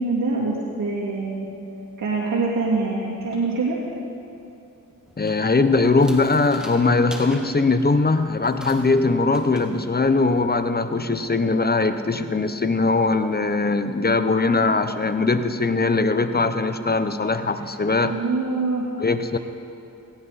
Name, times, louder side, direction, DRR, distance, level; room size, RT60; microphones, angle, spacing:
voice 1, 0.0-1.5 2.0-3.8 18.0-18.9, right 3 dB, 65° right, -6 dB, 2.7 m, -24 dB
sound 1, 5.1-10.7, equal, ahead, 2.4 m, -44 dB
voice 2, 5.2-18.1 19.0-19.4, left 3 dB, 25° left, 10 dB, 1.0 m, -21 dB
17.5 x 17.0 x 4.3 m, 2.7 s
cardioid pair, 55°, 35 cm